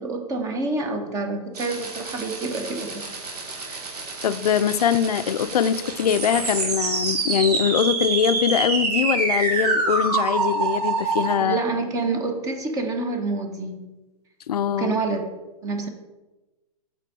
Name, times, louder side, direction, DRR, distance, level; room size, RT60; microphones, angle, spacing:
voice 1, 0.0-3.1 3.7-3.8 4.8-4.9 11.4-13.9 14.7-15.2 15.6-15.9, right 3 dB, 15° right, 5 dB, 0.7 m, -28 dB
sound 1, 1.6-11.3, right 3 dB, 85° right, 1.2 m, -26 dB
voice 2, 4.2-11.6 14.5-15.0, left 8 dB, 85° left, 13 dB, 0.4 m, -22 dB
5.4 x 3.6 x 5.4 m, 1.1 s
hypercardioid pair, 135°, 19 cm